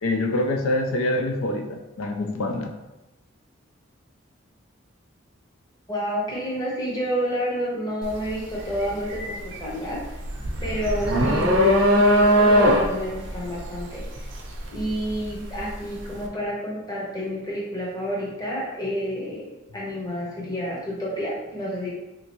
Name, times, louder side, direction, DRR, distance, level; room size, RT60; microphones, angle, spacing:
voice 1, 0.0-2.7, left 1 dB, 85° left, 3 dB, 0.4 m, -25 dB
voice 2, 5.9-10.2 10.6-14.3 14.7-21.9, equal, 20° left, -5 dB, 0.8 m, -29 dB
sound 1, 8.0-8.3 8.6-15.7, equal, 65° right, 0.6 m, -20 dB
3.4 x 2.8 x 2.9 m, 1.0 s
head